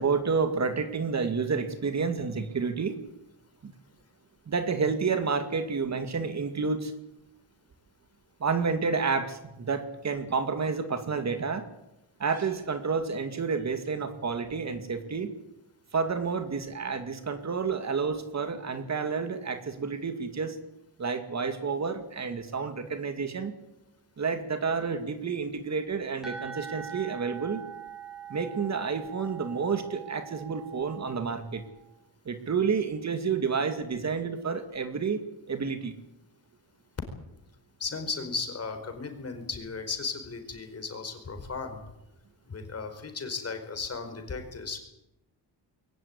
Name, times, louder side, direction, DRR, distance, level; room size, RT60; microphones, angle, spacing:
voice 1, 0.0-3.0 3.6-3.7 4.5-6.9 8.4-11.7 12.2-15.3 15.9-20.6 21.0-23.5 24.2-27.6 28.3-31.6 32.3-35.2 35.5-35.9, right 5 dB, 40° right, 9 dB, 2.3 m, -30 dB
sound 1, 26.2-31.8, right 7 dB, ahead, 7.5 m, -43 dB
voice 2, 37.8-41.8 42.5-44.8, left 4 dB, 35° left, 6 dB, 4.6 m, -35 dB
22.5 x 17.0 x 9.8 m, 0.87 s
wide cardioid pair, 140°, 42 cm